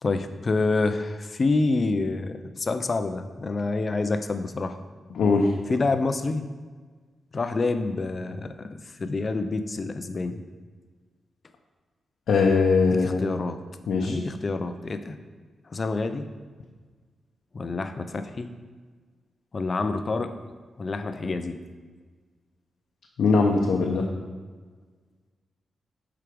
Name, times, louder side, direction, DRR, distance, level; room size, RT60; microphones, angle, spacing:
voice 1, 0.0-4.8 5.7-6.4 7.3-10.4 12.8-13.6 14.0-15.2 15.7-16.3 17.5-18.5 19.5-20.3 20.8-21.6, left 3 dB, 30° left, 9 dB, 0.5 m, -27 dB
voice 2, 5.2-5.5 12.3-13.2 13.9-14.1 23.2-24.0, left 4 dB, 75° left, -1 dB, 0.8 m, -21 dB
7.7 x 4.9 x 5.1 m, 1.4 s
wide cardioid pair, 155°, 0 cm